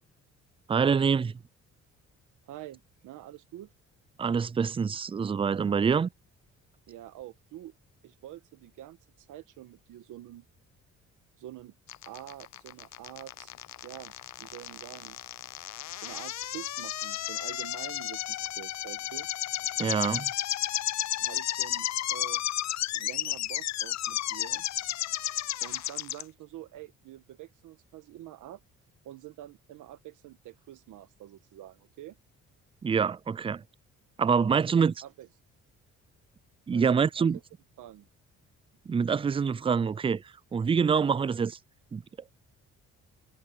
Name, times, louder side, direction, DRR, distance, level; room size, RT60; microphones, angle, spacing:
voice 1, 0.7-1.4 4.2-6.1 19.8-20.3 32.8-33.6 34.2-34.9 36.7-37.4 38.9-40.2 40.5-41.6 41.9-42.0, right 6 dB, 20° right, 0.4 m, -25 dB
voice 2, 2.5-3.7 6.9-7.7 8.0-10.5 11.4-11.7 12.1-13.5 13.8-14.1 14.4-15.2 16.0-19.3 21.2-22.4 22.9-24.6 25.6-28.6 29.0-32.2 34.4-35.3 36.7-37.4 37.8-38.1, right 14 dB, 85° right, 1.5 m, -46 dB
sound 1, 11.9-26.2, left 13 dB, 65° left, 0.7 m, -33 dB
cardioid pair, 90°, 30 cm